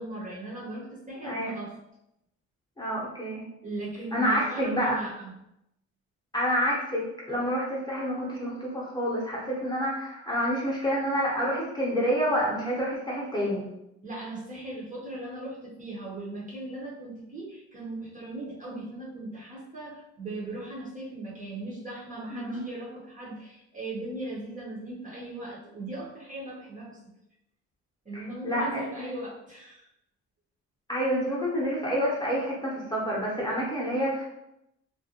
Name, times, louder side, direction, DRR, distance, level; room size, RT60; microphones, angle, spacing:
voice 1, 0.0-1.7 3.6-5.4 14.0-27.0 28.0-29.9, right 2 dB, 25° right, -4 dB, 0.7 m, -38 dB
voice 2, 1.2-1.5 2.8-3.4 4.1-5.0 6.3-13.6 22.3-22.6 28.1-28.8 30.9-34.2, equal, 15° left, -5 dB, 0.8 m, -28 dB
2.4 x 2.1 x 2.8 m, 0.85 s
cardioid pair, 90°, 30 cm